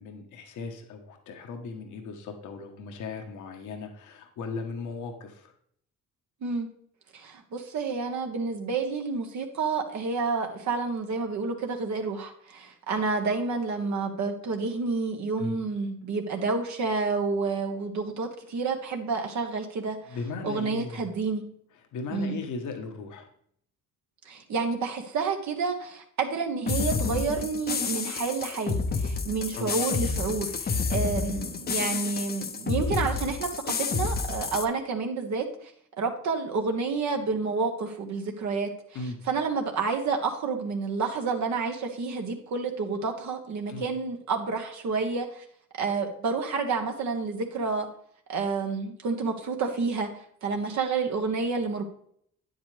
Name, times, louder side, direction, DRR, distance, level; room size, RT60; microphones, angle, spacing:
voice 1, 0.0-5.5 15.4-15.6 20.1-21.1 21.8-23.3 29.6-29.8 38.9-39.2 43.7-43.9, left 4 dB, 75° left, 4 dB, 1.2 m, -37 dB
voice 2, 7.1-20.2 20.4-21.4 22.1-22.4 24.2-35.7 36.0-38.7 39.3-45.4 45.7-47.9 48.3-51.8, right 4 dB, 65° right, 3 dB, 1.2 m, -29 dB
sound 1, 26.7-34.7, left 5 dB, 30° left, 0.7 m, -29 dB
9.2 x 8.0 x 3.3 m, 0.66 s
cardioid pair, 90°, 30 cm